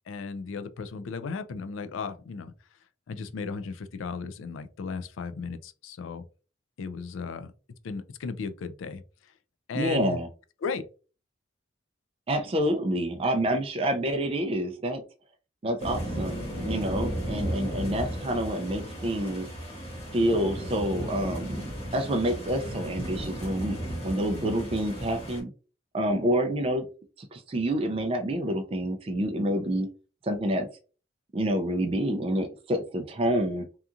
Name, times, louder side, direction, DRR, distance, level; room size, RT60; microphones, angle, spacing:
voice 1, 0.1-2.5 3.1-6.2 6.8-7.5 7.8-9.0 9.7-10.2 10.6-10.9, left 4 dB, 75° left, 0.4 m, -35 dB
voice 2, 9.7-10.3 12.3-15.0 15.6-19.5 20.1-21.6 21.9-23.8 24.0-25.5 25.9-26.9 27.2-29.9 30.2-30.7 31.3-33.6, right 1 dB, 30° right, 0.3 m, -28 dB
sound 1, 15.8-25.4, equal, 30° left, 1.1 m, -34 dB
2.8 x 2.4 x 2.4 m
head